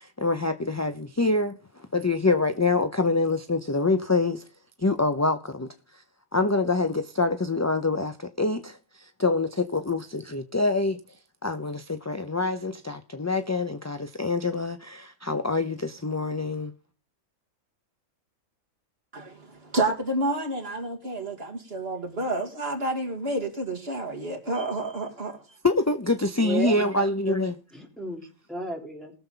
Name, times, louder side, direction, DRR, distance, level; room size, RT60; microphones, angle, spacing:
voice 1, 0.0-1.6 1.9-4.4 4.8-5.7 6.3-11.0 11.4-16.7 25.6-27.6, left 3 dB, 20° left, 0.5 m, -25 dB
voice 2, 19.1-25.4, right 2 dB, 50° right, 2.4 m, -29 dB
voice 3, 26.4-27.4 27.7-28.2 28.5-29.1, right 1 dB, ahead, 3.5 m, -33 dB
20.0 x 7.0 x 3.9 m
omnidirectional pair, 1.3 m